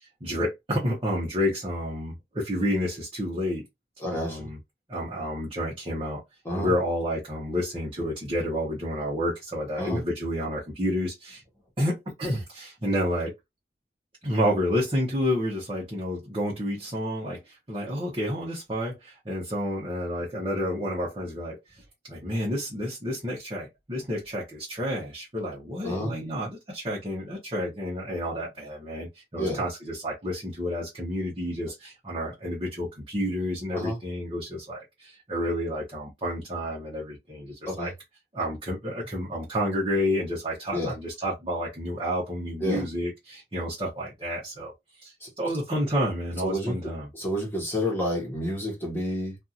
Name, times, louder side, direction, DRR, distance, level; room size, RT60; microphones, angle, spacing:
voice 1, 0.2-3.6 4.1-4.6 4.9-6.2 6.5-11.4 11.8-13.3 14.2-17.4 17.7-21.6 22.1-37.9 38.3-44.7 45.0-47.1, equal, 30° right, 1.0 m, -30 dB
voice 2, 4.0-4.5 6.4-6.7 9.8-10.0 25.8-26.1 29.4-29.6 33.7-34.0 37.7-37.9 40.7-40.9 42.6-42.8 45.2-45.3 46.4-46.8 47.1-49.4, equal, 10° left, 1.1 m, -29 dB
2.6 x 2.5 x 2.7 m
head